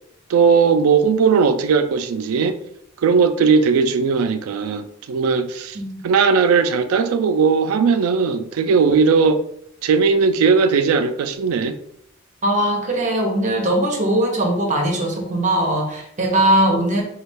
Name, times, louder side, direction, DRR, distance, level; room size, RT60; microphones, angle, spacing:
voice 1, 0.3-2.6 3.0-5.8 6.0-9.4 9.8-11.8, right 5 dB, 90° right, 0.3 m, -17 dB
voice 2, 12.4-17.0, right 1 dB, 35° right, 0.7 m, -20 dB
4.1 x 2.3 x 3.3 m
head